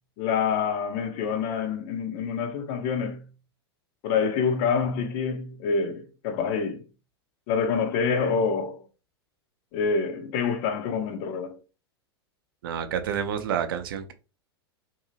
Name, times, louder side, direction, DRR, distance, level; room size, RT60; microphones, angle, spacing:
voice 1, 0.2-3.2 4.0-6.8 7.5-8.8 9.7-11.6, left 5 dB, 40° left, 0.5 m, -26 dB
voice 2, 12.6-14.1, right 8 dB, 55° right, 0.5 m, -29 dB
2.7 x 2.7 x 2.7 m
figure-of-eight pair, 90°, 14 cm